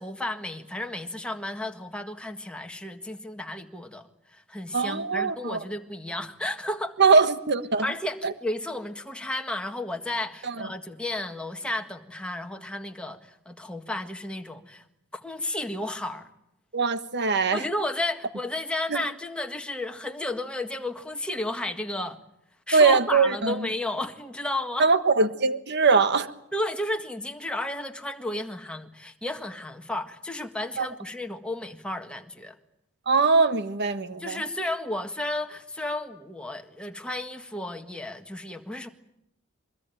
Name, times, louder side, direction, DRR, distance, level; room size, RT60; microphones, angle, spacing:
voice 1, 0.0-7.0 7.8-14.8 15.2-16.3 17.5-22.2 22.7-24.9 26.5-32.6 34.2-38.9, left 1 dB, 5° left, 4 dB, 1.7 m, -33 dB
voice 2, 4.7-5.6 7.0-7.8 8.2-8.3 10.4-10.7 16.7-17.6 18.9-19.0 22.7-23.7 24.8-26.3 30.8-30.9 33.1-34.4, right 4 dB, 55° right, 11 dB, 1.4 m, -22 dB
23.0 x 22.0 x 9.1 m, 0.80 s
head